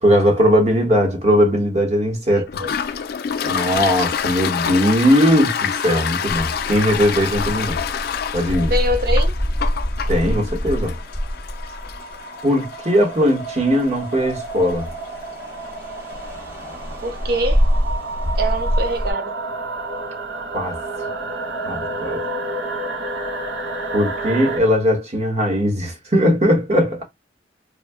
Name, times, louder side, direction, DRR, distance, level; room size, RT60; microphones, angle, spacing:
voice 1, 0.0-2.6 3.4-7.8 8.3-8.7 10.1-10.9 12.4-14.9 20.5-20.8 21.6-22.2 23.9-27.0, equal, 35° right, 0.9 m, -19 dB
voice 2, 2.3-2.7 8.7-9.3 17.0-17.7 18.3-19.4, right 1 dB, 55° right, 0.6 m, -24 dB
Toilet flush, 2.5-15.9, left 7 dB, 55° left, 0.3 m, -28 dB
sound 1, 6.2-12.4 12.9-19.1, equal, 10° right, 1.0 m, -25 dB
sound 2, 9.6-24.6, right 2 dB, 85° right, 0.8 m, -31 dB
2.7 x 2.1 x 3.3 m
head